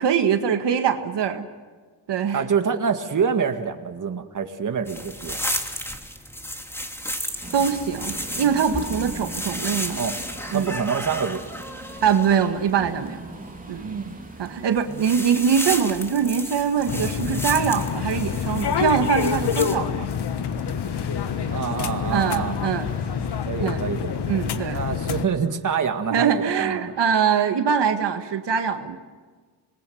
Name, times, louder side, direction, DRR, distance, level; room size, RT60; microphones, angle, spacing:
voice 1, 0.0-1.5 2.1-2.4 7.5-10.0 10.5-10.7 12.0-13.2 13.7-13.9 14.4-20.1 22.1-22.9 23.6-23.8 24.3-24.8 26.1-29.0, right 7 dB, 75° right, 6 dB, 1.8 m, -23 dB
voice 2, 2.3-5.4 9.9-10.1 10.5-11.4 13.8-14.2 14.9-15.1 21.5-22.5 23.4-26.9, right 6 dB, 45° right, 6 dB, 2.0 m, -26 dB
sound 1, 4.9-12.5 14.3-14.5 14.8-19.8, equal, 5° left, 2.9 m, -33 dB
sound 2, 7.4-23.4, right 2 dB, 20° right, 3.1 m, -41 dB
sound 3, 16.9-25.3, left 7 dB, 65° left, 1.4 m, -27 dB
26.5 x 21.0 x 7.9 m, 1.5 s
cardioid pair, 75°, 43 cm